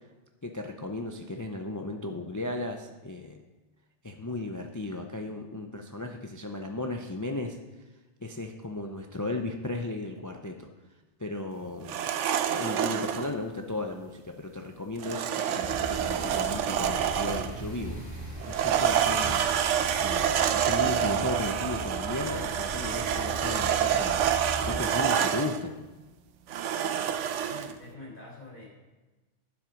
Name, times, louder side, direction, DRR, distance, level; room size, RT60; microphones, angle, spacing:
voice 1, 0.4-3.4 4.0-7.6 8.2-10.7 11.2-12.0 12.5-18.0 18.5-19.4 20.0-24.3 24.6-25.7, left 2 dB, 25° left, 4 dB, 0.5 m, -35 dB
sound 1, 11.8-13.3 15.0-17.6 18.4-25.6 26.5-27.7, right 9 dB, 80° right, 1.0 m, -27 dB
sound 2, 15.6-24.8, right 1 dB, 65° right, 2.7 m, -39 dB
voice 2, 27.4-28.7, left 2 dB, 45° left, -5 dB, 4.4 m, -45 dB
10.5 x 7.6 x 5.1 m, 1.2 s
omnidirectional pair, 1.3 m